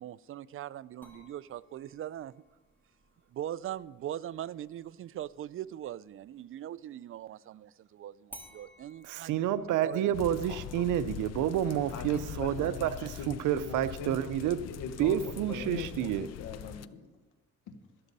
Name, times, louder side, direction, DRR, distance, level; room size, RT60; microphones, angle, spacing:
voice 1, 0.0-2.3 3.3-9.3 9.8-10.1, right 11 dB, 45° right, 0.4 m, -41 dB
sound 1, 1.0-6.6 8.3-13.3, right 1 dB, 5° left, 3.1 m, -58 dB
voice 2, 9.0-14.6 15.0-16.3, right 11 dB, 85° right, 0.7 m, -29 dB
sound 2, 10.1-16.9, left 12 dB, 60° left, 0.5 m, -43 dB
voice 3, 10.5-10.9 11.9-14.2 14.6-17.1 17.7-17.8, left 5 dB, 90° left, 1.4 m, -42 dB
12.5 x 12.5 x 4.1 m
cardioid pair, 90°, 30 cm